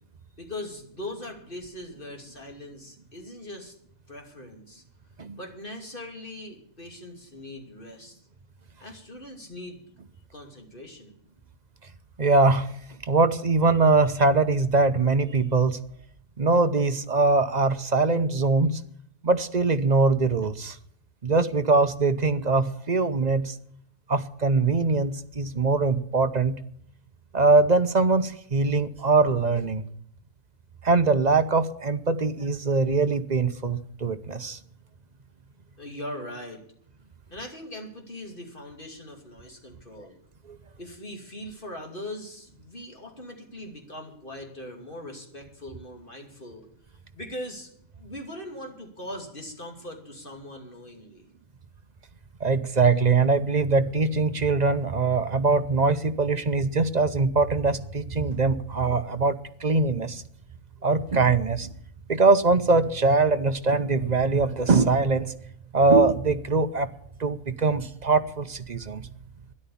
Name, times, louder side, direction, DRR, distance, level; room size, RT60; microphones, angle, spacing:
voice 1, 0.4-3.7 4.1-4.8 5.4-8.2 8.8-9.8 10.3-11.2 35.8-36.6 37.3-40.2 40.8-46.7 47.1-51.2, left 1 dB, 40° left, 3 dB, 2.9 m, -40 dB
voice 2, 12.2-12.7 13.0-15.8 16.4-18.8 19.2-20.8 21.2-23.6 24.1-26.6 27.3-29.8 30.8-34.6 40.0-40.1 52.4-60.2 60.8-61.7 62.1-65.3 65.7-66.9 67.2-69.0, right 3 dB, 35° right, 10 dB, 0.8 m, -22 dB
13.0 x 11.0 x 7.1 m, 0.65 s
omnidirectional pair, 1.4 m